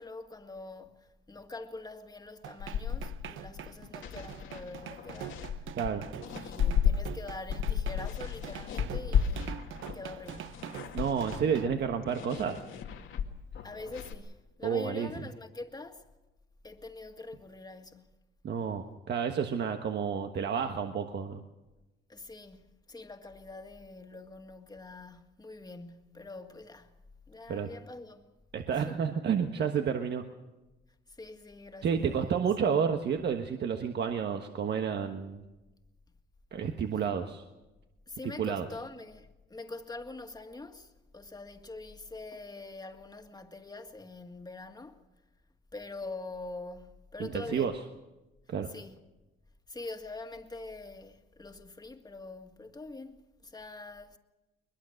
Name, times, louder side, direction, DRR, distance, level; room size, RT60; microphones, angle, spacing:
voice 1, 0.0-5.7 6.2-11.2 13.6-16.1 16.6-18.1 22.1-26.9 27.3-28.3 28.7-29.1 31.1-32.4 38.1-45.0 45.7-47.8 48.7-49.0 49.7-54.2, left 3 dB, 20° left, 1.9 m, -45 dB
sound 1, 2.4-11.7, right 11 dB, 80° right, 0.9 m, -44 dB
sound 2, 2.6-6.9 7.3-14.2, left 8 dB, 80° left, 2.0 m, -34 dB
voice 2, 10.9-12.6 14.6-15.1 18.4-21.4 27.5-27.7 28.5-30.2 31.8-35.4 36.5-37.4 38.4-38.7 47.2-47.7 48.5-48.7, right 7 dB, 60° right, 1.4 m, -30 dB
22.0 x 21.5 x 6.4 m
cardioid pair, 90°, 20 cm